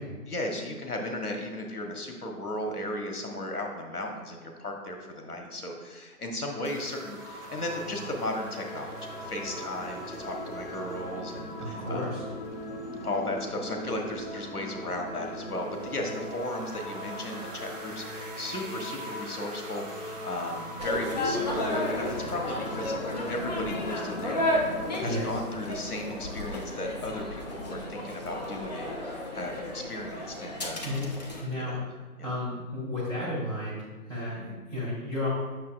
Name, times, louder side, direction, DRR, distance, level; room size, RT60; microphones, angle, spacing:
voice 1, 0.3-12.2 13.0-24.6 25.0-31.0 31.5-31.8 32.2-32.3, left 1 dB, 75° left, 2 dB, 1.2 m, -35 dB
sound 1, 6.6-25.2, right 2 dB, 55° right, 1.6 m, -45 dB
sound 2, 6.8-25.0, left 1 dB, 50° left, 1.4 m, -41 dB
voice 2, 11.6-12.2 25.0-25.4 30.8-31.0 31.4-31.8 32.2-35.3, left 1 dB, 5° left, -10 dB, 1.6 m, -33 dB
sound 3, 20.8-31.4, left 1 dB, 30° left, 0.7 m, -33 dB
8.5 x 6.3 x 2.4 m, 1.3 s
figure-of-eight pair, 140°, 45 cm